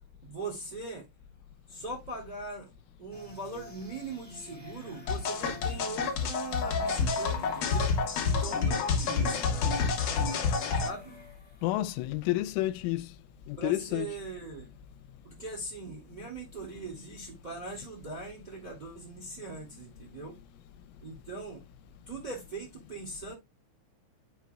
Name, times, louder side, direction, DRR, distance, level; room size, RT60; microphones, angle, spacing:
voice 1, 0.2-1.1 1.7-2.7 3.0-9.6 10.7-11.2 13.6-14.7 15.2-20.4 21.0-21.6 22.1-23.3, right 3 dB, 15° right, 2.1 m, -41 dB
sound 1, 3.1-12.0, equal, 5° left, 1.2 m, -51 dB
sound 2, 5.1-10.9, left 5 dB, 70° left, 1.9 m, -28 dB
voice 2, 11.6-13.1 13.5-14.1, left 16 dB, 90° left, 3.2 m, -30 dB
12.5 x 4.5 x 2.3 m
omnidirectional pair, 5.5 m